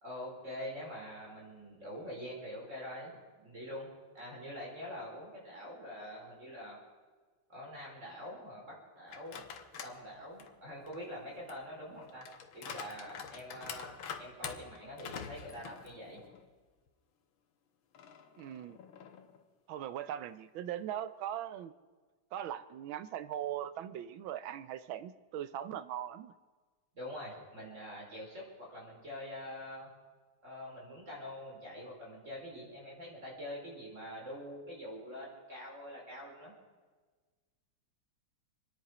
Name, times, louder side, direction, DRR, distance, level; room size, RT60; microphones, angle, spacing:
voice 1, 0.0-3.1 3.4-3.9 4.1-6.8 7.5-9.4 9.7-12.3 12.5-16.2 26.9-29.9 30.4-36.5, left 1 dB, 35° right, -3 dB, 4.9 m, -45 dB
sound 1, 9.1-10.0 10.4-16.5 16.9-17.0 17.9-19.4, left 7 dB, 85° left, 1.8 m, -47 dB
voice 2, 18.4-18.8 19.7-21.7 22.3-26.3, right 11 dB, 80° right, 13 dB, 1.5 m, -40 dB
26.0 x 10.5 x 5.0 m, 1.4 s
omnidirectional pair, 2.2 m